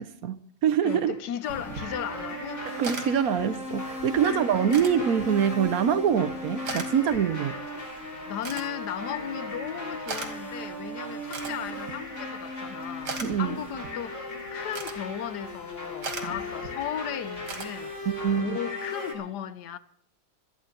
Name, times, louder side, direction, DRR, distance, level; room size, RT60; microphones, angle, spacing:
voice 1, 0.0-1.1 2.8-7.6 13.2-13.6 16.2-16.3 18.0-18.6, right 8 dB, 65° right, 1.2 m, -25 dB
voice 2, 0.8-2.7 4.2-4.4 8.3-17.9 18.4-19.8, left 10 dB, 80° left, 1.4 m, -36 dB
sound 1, 0.8-19.1, left 2 dB, 45° left, 3.3 m, -37 dB
sound 2, 1.5-18.4, right 3 dB, 80° right, 2.5 m, -42 dB
26.0 x 9.8 x 4.4 m
omnidirectional pair, 1.8 m